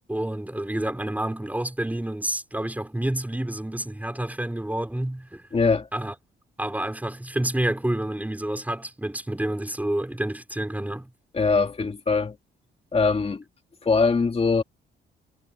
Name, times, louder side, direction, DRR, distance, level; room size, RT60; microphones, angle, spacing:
voice 1, 0.1-5.5 5.9-6.1 6.6-11.1, right 1 dB, 10° right, 5.0 m, -29 dB
voice 2, 5.5-5.9 11.3-12.4 12.9-13.4 13.8-14.6, left 4 dB, 30° left, 2.1 m, -22 dB
cardioid pair, 90°, 20 cm